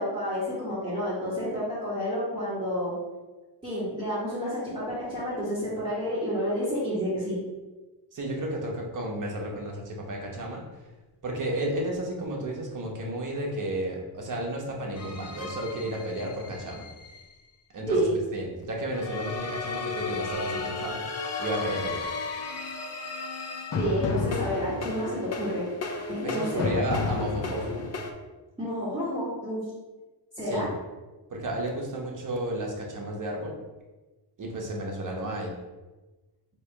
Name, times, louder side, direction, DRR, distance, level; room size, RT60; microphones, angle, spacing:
voice 1, 0.0-2.9 3.6-7.4 17.9-18.1 23.7-25.6 26.1-26.7 28.6-29.6 30.4-30.7, equal, 10° right, -11 dB, 1.3 m, -29 dB
voice 2, 8.1-10.6 11.2-16.9 17.7-18.0 18.3-21.0 21.4-22.1 26.2-27.8 30.4-30.7 31.3-33.5 34.4-35.5, right 1 dB, 45° right, 0 dB, 1.0 m, -32 dB
sound 1, 15.0-17.2 18.9-28.1, left 4 dB, 35° left, 0.5 m, -33 dB
3.3 x 2.9 x 4.4 m, 1.2 s
wide cardioid pair, 115°, 45 cm